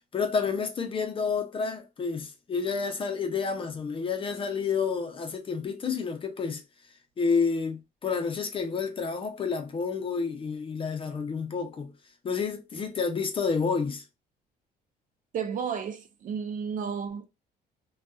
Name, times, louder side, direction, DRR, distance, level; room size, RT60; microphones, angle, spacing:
voice 1, 0.1-6.6 7.2-11.9 12.2-14.0, left 5 dB, 30° left, 0.6 m, -29 dB
voice 2, 15.3-17.3, right 7 dB, 50° right, 0.5 m, -32 dB
2.6 x 2.3 x 2.2 m
cardioid pair, 110°, 17 cm